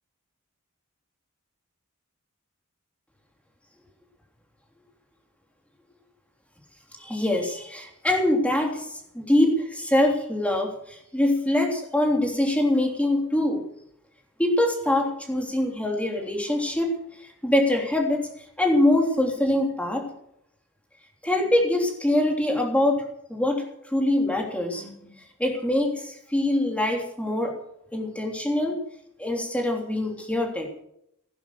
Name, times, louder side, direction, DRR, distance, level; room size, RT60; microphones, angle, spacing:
voice 1, 7.0-13.6 14.4-16.9 17.4-18.3 18.6-20.1 21.2-23.6 23.9-25.1 25.4-27.5 27.9-28.8 29.2-30.7, left 1 dB, 5° left, 2 dB, 3.3 m, -24 dB
16.0 x 11.0 x 6.8 m, 0.75 s
head